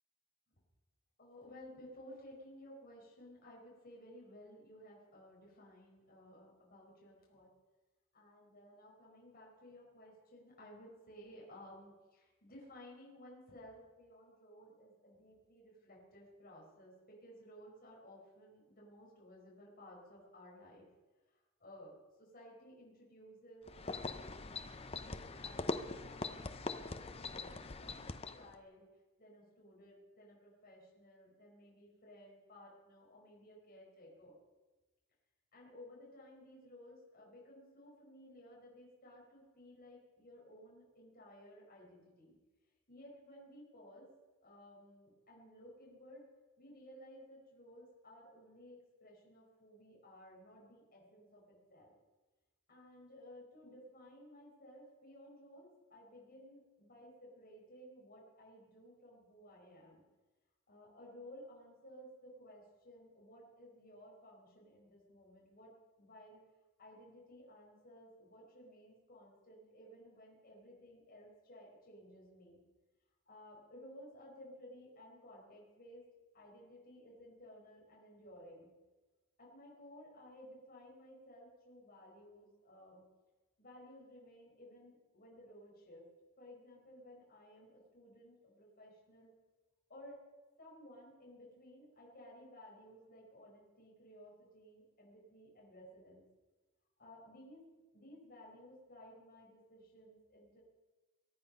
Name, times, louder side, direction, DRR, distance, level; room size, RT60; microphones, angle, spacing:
voice 1, 1.2-7.5 8.1-20.9 21.3-21.9 22.2-24.7 25.0-26.9 27.2-28.9 29.2-34.4 35.5-42.4 42.9-44.1 44.4-46.3 46.6-52.0 52.7-60.1 60.7-65.7 66.0-66.4 66.8-72.6 73.3-76.1 76.3-78.7 79.4-83.1 83.6-86.1 86.4-89.3 89.9-90.2 90.6-96.3 97.0-97.7 97.9-100.6, equal, 40° left, -3 dB, 5.2 m, -57 dB
sound 1, 23.7-28.5, left 3 dB, 25° left, 0.7 m, -42 dB
22.5 x 10.5 x 5.5 m, 1.2 s
head